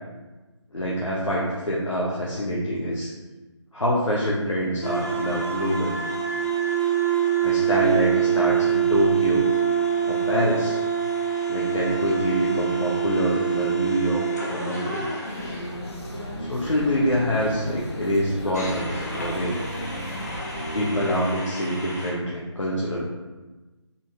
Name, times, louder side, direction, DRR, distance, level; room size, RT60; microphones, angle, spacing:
voice 1, 0.7-3.1 3.7-6.0 7.4-9.5 10.0-10.8 11.5-15.1 16.4-19.6 20.7-23.0, equal, 85° left, -5 dB, 1.0 m, -25 dB
sound 1, 4.8-15.7 18.5-22.1, right 8 dB, 35° left, 0.8 m, -26 dB
sound 2, 15.3-20.9, equal, 60° left, 1.0 m, -34 dB
4.3 x 2.8 x 3.5 m, 1.2 s
figure-of-eight pair, 160°, 16 cm